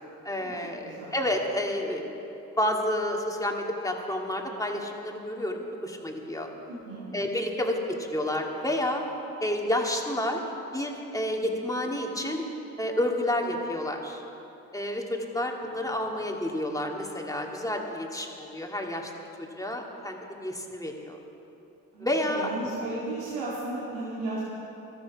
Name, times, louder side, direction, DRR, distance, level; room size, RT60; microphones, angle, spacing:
voice 1, 0.2-2.2 2.6-6.5 7.1-9.0 9.4-10.4 10.7-12.4 12.8-14.2 14.7-19.1 19.4-21.2 22.0-22.5, left 1 dB, 10° left, 0 dB, 2.3 m, -30 dB
voice 2, 0.8-1.1 6.7-7.1 21.9-24.4, right 2 dB, 85° right, -7 dB, 2.4 m, -35 dB
18.0 x 13.0 x 4.8 m, 3.0 s
supercardioid pair, 60°, 35 cm